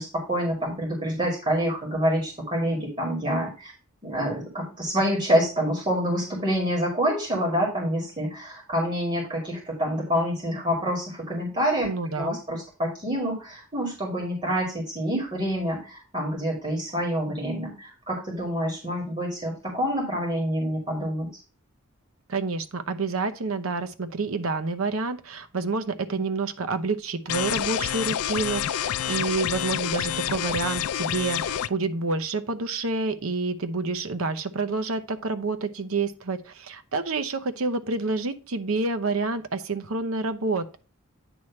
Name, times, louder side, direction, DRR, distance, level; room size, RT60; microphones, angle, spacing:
voice 1, 0.0-3.7 4.0-11.9 12.1-21.3, equal, 25° right, -1 dB, 2.1 m, -27 dB
voice 2, 11.8-12.4 22.3-40.8, right 3 dB, 80° right, 10 dB, 0.8 m, -28 dB
sound 1, 27.3-31.7, left 10 dB, 90° left, 0.4 m, -28 dB
9.0 x 3.2 x 5.8 m, 0.35 s
head